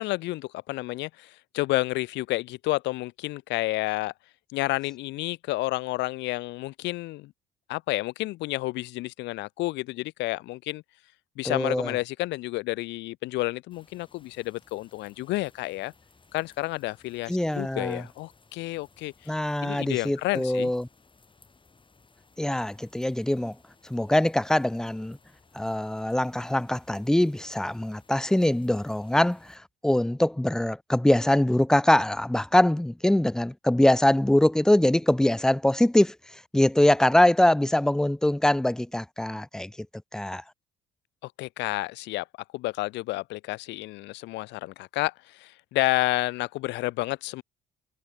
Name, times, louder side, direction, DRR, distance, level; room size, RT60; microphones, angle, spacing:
voice 1, 0.0-4.1 4.5-7.3 7.7-10.8 11.4-15.9 16.3-20.7 41.2-42.3 42.5-47.4, left 19 dB, 70° left, 0.5 m, -30 dB
voice 2, 11.4-11.9 17.3-18.0 19.3-20.9 22.4-23.6 23.8-25.2 25.5-36.2 36.5-39.7 40.1-40.4, left 1 dB, 5° left, 0.4 m, -23 dB
sound 1, 13.7-29.6, left 4 dB, 25° left, 4.8 m, -60 dB
supercardioid pair, 65°, 19 cm